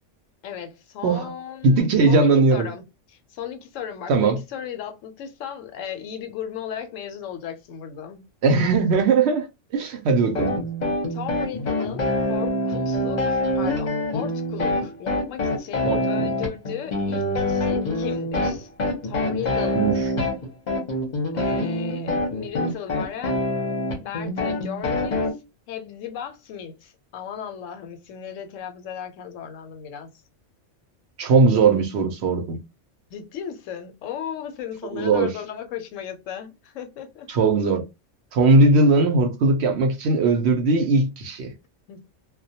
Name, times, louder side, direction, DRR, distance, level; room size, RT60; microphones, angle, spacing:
voice 1, 0.4-2.8 3.1-8.3 11.1-18.7 19.0-19.8 21.3-23.4 23.9-25.3 25.7-30.1 33.1-37.3 41.9-42.0, left 9 dB, 85° left, 0.9 m, -36 dB
voice 2, 1.6-2.7 4.1-4.4 8.4-9.5 9.7-10.6 15.8-16.3 19.7-20.0 31.2-32.6 34.9-35.3 37.3-37.8 38.3-41.5, right 3 dB, 65° right, 0.8 m, -19 dB
sound 1, 10.3-25.3, left 1 dB, 45° left, 0.7 m, -25 dB
2.2 x 2.1 x 2.7 m
omnidirectional pair, 1.3 m